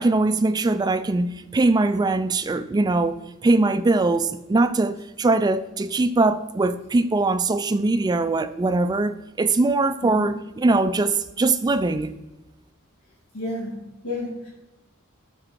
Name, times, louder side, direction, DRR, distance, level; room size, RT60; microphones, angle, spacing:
voice 1, 0.0-12.1, right 2 dB, 20° right, 0.3 m, -21 dB
voice 2, 13.3-13.7 14.0-14.5, left 2 dB, 90° left, 2.6 m, -30 dB
7.8 x 5.5 x 3.8 m
head